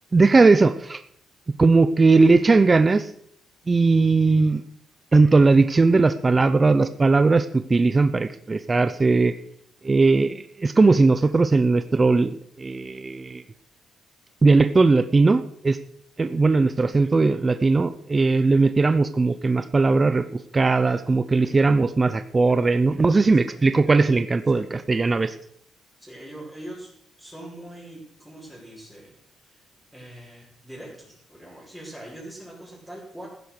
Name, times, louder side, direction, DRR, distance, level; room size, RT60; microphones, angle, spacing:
voice 1, 0.1-1.0 1.6-3.1 3.7-4.6 5.1-9.3 9.8-13.4 14.4-15.8 16.2-20.2 20.5-25.3, right 3 dB, 20° right, 11 dB, 0.7 m, -19 dB
voice 2, 21.4-21.7 23.4-23.7 24.5-24.7 26.0-26.9 27.2-29.1 29.4-29.6 29.9-33.3, right 1 dB, 5° left, -8 dB, 5.9 m, -42 dB
15.0 x 10.5 x 6.6 m, 0.67 s
cardioid pair, 130°, 0 cm